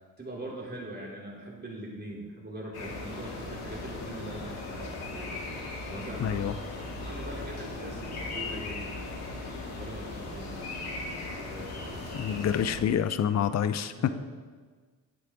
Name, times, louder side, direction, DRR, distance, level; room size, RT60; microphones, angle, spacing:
voice 1, 0.2-5.3 5.6-6.4 7.0-9.0 9.6-12.4 14.0-14.2, right 1 dB, 25° right, -3 dB, 3.1 m, -42 dB
sound 1, 2.7-12.8, left 2 dB, 75° left, 2.6 m, -38 dB
voice 2, 6.2-6.5 12.1-13.9, left 8 dB, 45° left, 13 dB, 0.5 m, -27 dB
9.5 x 8.4 x 3.7 m, 1.5 s
cardioid pair, 65°, 38 cm